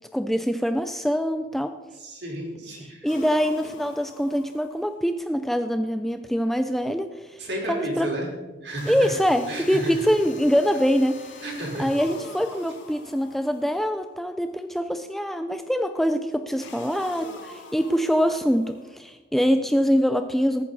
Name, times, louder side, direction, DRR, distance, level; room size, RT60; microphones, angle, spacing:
voice 1, 0.1-1.7 3.0-8.1 8.9-11.4 11.8-20.6, equal, ahead, 8 dB, 0.4 m, -24 dB
voice 2, 1.9-3.1 7.4-8.3 8.6-9.1 9.5-9.9 11.4-11.9, right 1 dB, 60° right, -2 dB, 4.2 m, -32 dB
sound 1, 3.1-5.0 8.8-14.0 16.6-19.0, left 3 dB, 75° left, 1.7 m, -44 dB
20.0 x 9.2 x 4.1 m, 1.2 s
head